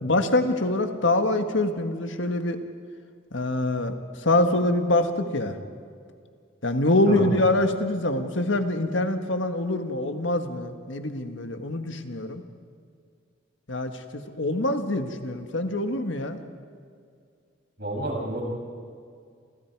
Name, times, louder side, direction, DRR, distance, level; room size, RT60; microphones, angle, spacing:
voice 1, 0.0-2.6 3.3-5.6 6.6-12.4 13.7-16.4, left 2 dB, 65° left, 6 dB, 1.6 m, -25 dB
voice 2, 17.8-18.4, right 1 dB, 50° right, -2 dB, 7.4 m, -30 dB
29.5 x 28.5 x 4.7 m, 2.2 s
head